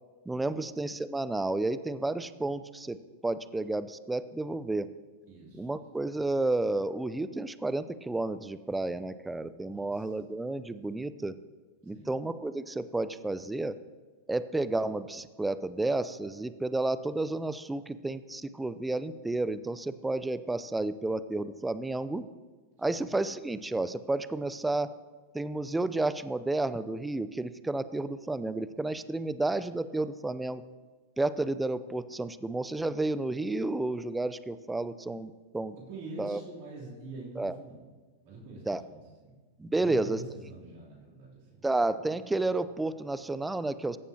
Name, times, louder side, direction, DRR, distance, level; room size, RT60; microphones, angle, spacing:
voice 1, 0.3-4.9 5.5-11.3 11.8-13.8 14.3-22.2 22.8-24.9 25.3-30.6 31.2-35.8 36.2-36.4 37.4-37.6 38.7-38.8 39.6-40.2 41.6-44.0, right 2 dB, 10° right, 14 dB, 0.4 m, -31 dB
voice 2, 5.3-5.8 9.7-10.1 11.9-12.1 22.8-23.1 35.9-37.9 38.2-39.3 39.8-41.7, right 2 dB, 60° right, -5 dB, 3.2 m, -45 dB
15.0 x 7.1 x 2.9 m, 1.4 s
hypercardioid pair, 100°, 0 cm